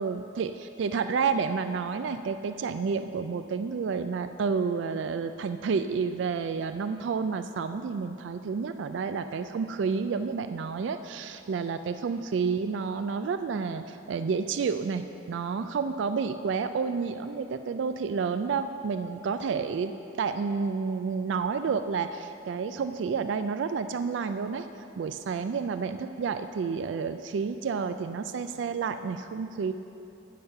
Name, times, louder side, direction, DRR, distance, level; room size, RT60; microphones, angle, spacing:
voice 1, 0.0-19.9 20.2-24.7 25.0-29.7, right 5 dB, 70° right, 9 dB, 0.3 m, -30 dB
9.5 x 6.7 x 6.4 m, 2.8 s
head